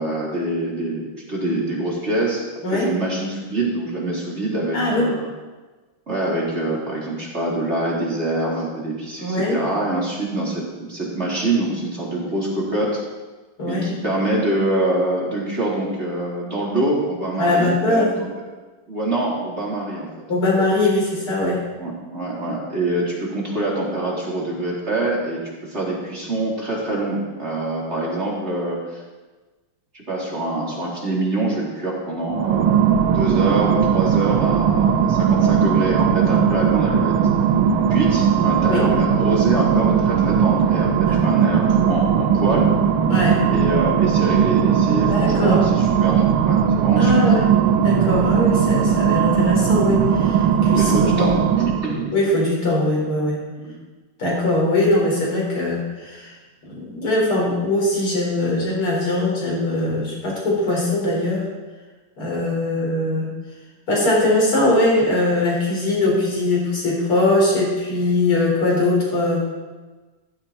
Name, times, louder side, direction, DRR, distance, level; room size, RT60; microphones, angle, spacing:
voice 1, 0.0-2.4 2.7-5.2 6.1-10.6 10.9-13.0 13.7-18.3 18.9-20.1 21.8-25.4 25.7-29.0 30.1-32.7 33.1-37.1 37.9-42.7 43.5-47.4 50.7-52.1 53.6-53.7, right 2 dB, 30° right, -5 dB, 4.4 m, -25 dB
voice 2, 4.7-5.1 9.2-9.6 13.6-13.8 17.4-18.1 20.3-21.6 38.7-38.9 41.1-41.2 43.1-43.4 45.1-45.7 47.0-47.5 47.8-51.3 52.1-53.4 54.2-56.4 56.7-61.5 62.2-63.3 63.9-69.4, left 2 dB, 90° left, -3 dB, 6.3 m, -21 dB
sound 1, 32.3-52.0, right 8 dB, 85° right, 1.9 m, -18 dB
18.0 x 15.0 x 4.5 m, 1.3 s
omnidirectional pair, 2.3 m